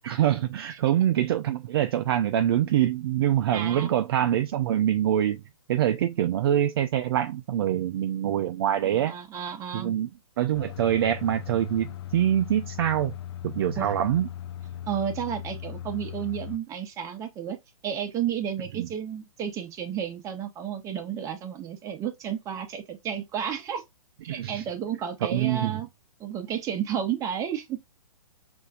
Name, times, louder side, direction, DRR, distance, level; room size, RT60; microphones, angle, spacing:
voice 1, 0.0-5.4 5.7-9.1 9.7-10.1 10.4-13.1 13.4-14.3 18.8-18.9 24.3-24.6 25.2-25.8, right 11 dB, 45° right, 0.4 m, -25 dB
voice 2, 3.5-3.9 8.9-9.9 13.7-13.9 14.9-17.6 17.8-23.8 24.2-25.9 26.2-27.8, right 9 dB, 15° right, 0.7 m, -32 dB
sound 1, 10.5-16.6, left 11 dB, 45° left, 0.5 m, -38 dB
5.3 x 2.6 x 2.3 m
hypercardioid pair, 130°, 18 cm